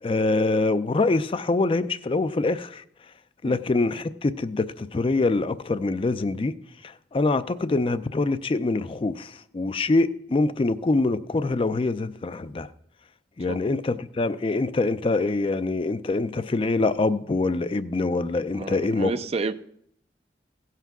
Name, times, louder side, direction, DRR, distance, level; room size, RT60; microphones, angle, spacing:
voice 1, 0.0-2.8 3.4-6.5 7.1-12.7 13.4-19.1, left 3 dB, 30° left, 13 dB, 0.4 m, -24 dB
voice 2, 18.5-19.5, right 3 dB, 35° right, 13 dB, 0.4 m, -30 dB
16.0 x 5.7 x 6.0 m, 0.69 s
head